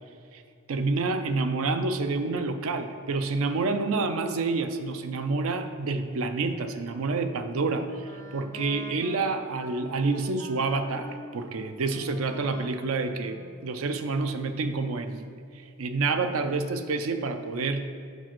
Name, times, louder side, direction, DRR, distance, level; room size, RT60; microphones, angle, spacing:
voice 1, 0.7-15.2 15.5-17.9, right 3 dB, 65° right, 9 dB, 0.5 m, -28 dB
Wind instrument woodwind instrument, 7.5-14.2, left 1 dB, 15° left, 0.4 m, -47 dB
5.0 x 4.5 x 5.9 m, 2.4 s
head